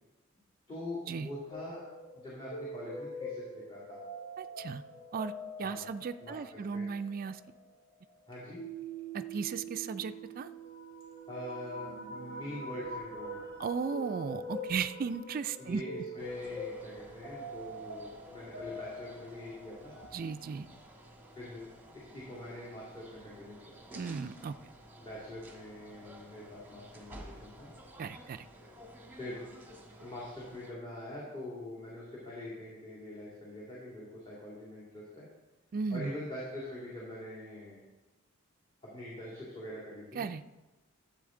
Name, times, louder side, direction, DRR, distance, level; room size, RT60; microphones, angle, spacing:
voice 1, 0.7-1.9 2.1-4.0 5.6-5.9 6.2-6.9 8.3-8.6 11.3-13.4 15.6-19.9 21.4-23.8 25.0-27.7 29.2-29.4 30.0-35.2 35.9-37.8 38.8-40.2, left 1 dB, 25° left, -7 dB, 2.4 m, -44 dB
sound 1, 1.5-20.1, right 1 dB, 60° left, 2.8 m, -44 dB
voice 2, 4.4-4.8 5.1-5.3 5.6-7.4 9.1-10.5 13.6-15.8 20.1-20.7 23.9-24.6 28.0-28.5 35.7-36.1 40.1-40.5, right 5 dB, 40° right, 10 dB, 0.3 m, -36 dB
sound 2, 16.2-30.7, right 1 dB, 10° right, 1.4 m, -53 dB
12.0 x 7.8 x 3.8 m, 1.1 s
head